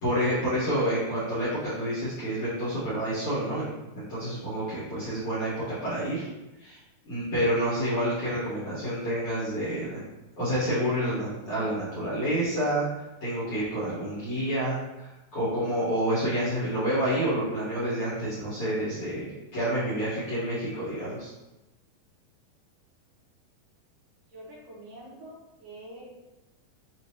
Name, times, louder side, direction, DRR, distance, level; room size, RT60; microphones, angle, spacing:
voice 1, 0.0-6.3 6.6-6.8 7.0-10.0 10.4-21.3, equal, 60° left, -11 dB, 1.6 m, -29 dB
voice 2, 24.3-26.2, right 1 dB, 70° right, -5 dB, 2.7 m, -46 dB
6.5 x 2.5 x 2.8 m, 1.0 s
omnidirectional pair, 4.3 m